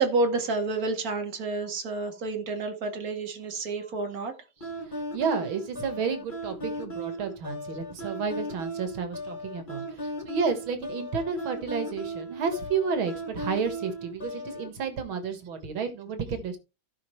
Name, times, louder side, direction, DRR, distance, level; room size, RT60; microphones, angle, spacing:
voice 1, 0.0-4.3, right 3 dB, 50° right, 2.3 m, -29 dB
sound 1, 4.6-14.7, right 1 dB, 25° left, 2.2 m, -37 dB
voice 2, 4.9-16.6, right 5 dB, 90° right, 2.4 m, -31 dB
16.0 x 5.4 x 3.2 m
omnidirectional pair, 2.2 m